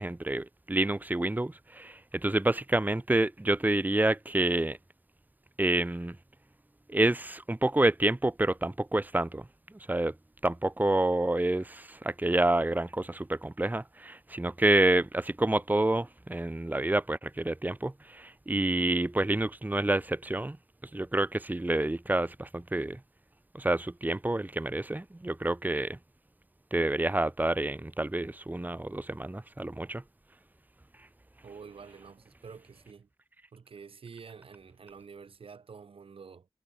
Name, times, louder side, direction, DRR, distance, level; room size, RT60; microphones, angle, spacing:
voice 1, 0.0-4.8 5.6-6.1 6.9-9.4 9.9-10.1 10.4-20.6 20.9-23.0 23.5-26.0 26.7-30.0, right 2 dB, 20° right, 1.2 m, -28 dB
voice 2, 31.4-33.1 33.5-36.5, right 5 dB, 85° right, 4.5 m, -48 dB
cardioid pair, 55°, 9 cm